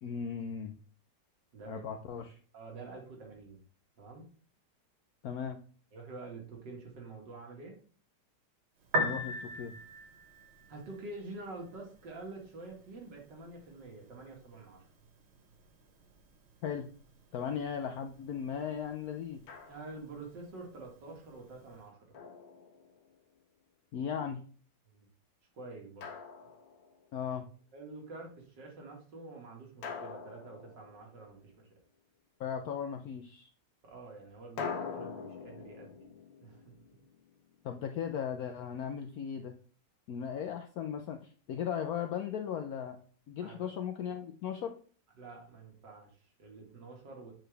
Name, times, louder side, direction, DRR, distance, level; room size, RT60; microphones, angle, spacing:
voice 1, 0.0-0.7 1.7-2.4 5.2-5.6 9.0-9.7 16.6-16.9 17.3-19.4 23.9-24.4 27.1-27.5 32.4-33.5 37.6-39.6 40.1-43.0 43.3-44.7, left 8 dB, 65° left, 5 dB, 1.0 m, -37 dB
voice 2, 1.5-1.9 2.5-3.6 4.0-4.2 5.9-7.8 10.7-14.9 19.6-22.1 24.9-25.1 25.5-26.1 27.7-31.7 33.8-36.1 36.4-36.8 43.4-43.7 45.1-47.3, right 3 dB, 70° right, 1 dB, 2.5 m, -47 dB
Piano, 8.8-21.8, equal, 45° right, 1.0 m, -43 dB
Drum, 19.5-20.2 22.1-23.2 26.0-27.2 29.8-31.5 34.6-37.5, left 6 dB, 85° left, 1.6 m, -44 dB
7.6 x 4.7 x 3.3 m, 0.42 s
omnidirectional pair, 2.0 m